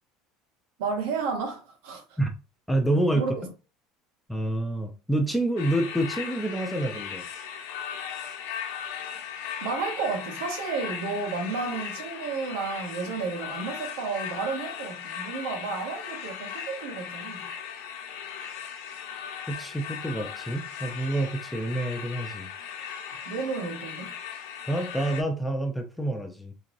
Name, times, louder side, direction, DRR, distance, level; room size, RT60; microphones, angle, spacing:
voice 1, 0.8-2.2 3.1-3.5 9.6-17.4 23.3-24.1, right 4 dB, 85° right, 1.2 m, -32 dB
voice 2, 2.7-3.3 4.3-7.3 19.5-22.5 24.7-26.5, right 1 dB, ahead, 0.4 m, -27 dB
sound 1, 5.6-25.2, left 8 dB, 80° left, 0.8 m, -38 dB
3.8 x 2.6 x 3.0 m
cardioid pair, 180°, 0 cm